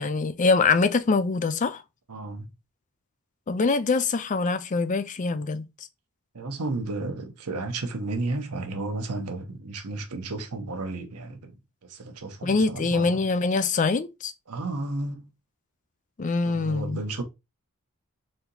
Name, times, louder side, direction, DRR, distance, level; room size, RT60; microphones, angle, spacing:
voice 1, 0.0-1.8 3.5-5.7 12.4-14.3 16.2-17.0, left 4 dB, 35° left, 0.4 m, -24 dB
voice 2, 2.1-2.5 6.3-11.5 11.8-13.2 14.5-15.3 16.4-17.2, right 2 dB, 90° right, 0.9 m, -33 dB
4.3 x 2.8 x 3.8 m
head